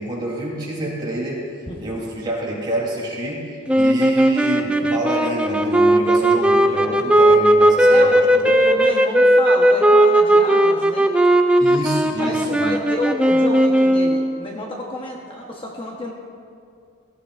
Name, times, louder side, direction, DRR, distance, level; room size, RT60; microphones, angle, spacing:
voice 1, 0.0-1.5 1.8-8.2 11.6-12.7, right 1 dB, 25° right, -4 dB, 3.3 m, -27 dB
sound 1, 3.7-14.4, right 1 dB, 5° right, 0.5 m, -16 dB
voice 2, 7.9-11.1 12.2-16.1, left 2 dB, 25° left, -2 dB, 1.1 m, -28 dB
17.0 x 15.5 x 2.5 m, 2.3 s
head